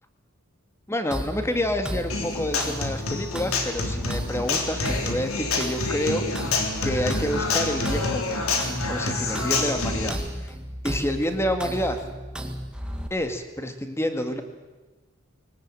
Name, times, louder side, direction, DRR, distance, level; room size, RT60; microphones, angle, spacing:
voice 1, 0.9-6.6 6.8-8.5 8.9-10.5 10.8-12.0 13.1-14.4, left 1 dB, 10° left, 7 dB, 2.0 m, -28 dB
sound 1, 1.1-13.1, equal, 5° right, 1.8 m, -34 dB
Human voice / Acoustic guitar, 2.1-10.1, left 3 dB, 70° left, 3.5 m, -28 dB
23.0 x 18.5 x 9.1 m, 1.2 s
head